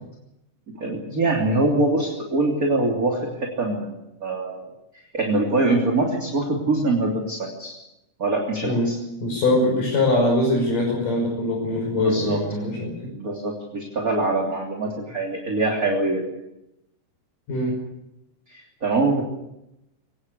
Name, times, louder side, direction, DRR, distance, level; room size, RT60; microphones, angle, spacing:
voice 1, 0.8-4.7 5.1-7.7 8.2-9.0 11.9-12.4 13.0-16.2 18.5-19.2, right 2 dB, 25° right, 0 dB, 3.3 m, -24 dB
voice 2, 9.2-12.9 17.5-17.8, left 1 dB, 75° left, -2 dB, 7.2 m, -22 dB
23.5 x 19.0 x 8.2 m, 0.87 s
omnidirectional pair, 3.8 m